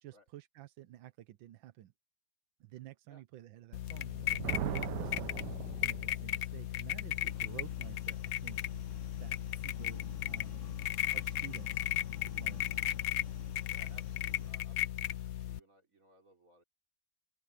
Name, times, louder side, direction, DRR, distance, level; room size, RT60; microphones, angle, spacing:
voice 1, 0.0-1.9 2.6-4.1 4.6-5.5 5.8-8.6 9.2-11.9 12.2-12.9, right 13 dB, 90° right, 1.5 m, -51 dB
sound 1, 3.7-15.6, left 12 dB, 65° left, 0.9 m, -36 dB
Thunder, 4.0-6.4, right 13 dB, 70° right, 1.2 m, -39 dB
sound 2, 7.1-14.5, left 5 dB, 40° left, 2.0 m, -52 dB
voice 2, 13.7-16.6, right 2 dB, 45° right, 4.5 m, -63 dB
open air
omnidirectional pair, 2.1 m